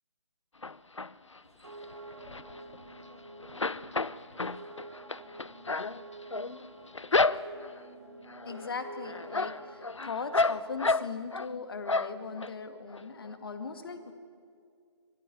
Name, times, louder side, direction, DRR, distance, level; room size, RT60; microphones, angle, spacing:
sound 1, 0.6-1.4 1.8-3.2 3.4-7.8 8.3-8.7 9.0-11.5 11.9-12.5 12.9-13.0 13.3-13.4, left 3 dB, 80° left, 0.6 m, -31 dB
sound 2, 1.4-9.8, right 2 dB, 60° right, 5.2 m, -48 dB
voice 1, 8.5-14.1, left 4 dB, 50° left, 8 dB, 2.0 m, -39 dB
23.5 x 15.0 x 9.2 m, 2.3 s
figure-of-eight pair, 140°, 15 cm